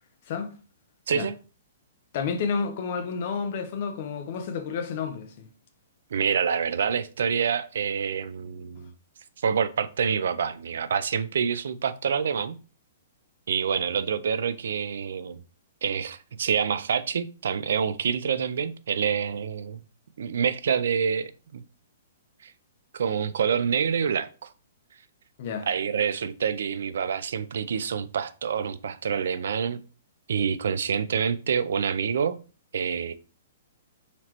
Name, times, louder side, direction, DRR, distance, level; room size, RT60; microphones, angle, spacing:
voice 1, 2.1-5.5 25.4-25.7, left 5 dB, 35° left, 0.6 m, -30 dB
voice 2, 6.1-8.9 9.4-12.6 13.5-15.4 15.8-19.8 20.2-21.6 22.4-22.5 22.9-24.5 25.7-29.8 30.3-32.4 32.7-33.1, right 7 dB, 65° right, 0.3 m, -27 dB
4.1 x 3.1 x 2.9 m
hypercardioid pair, 175°, 0 cm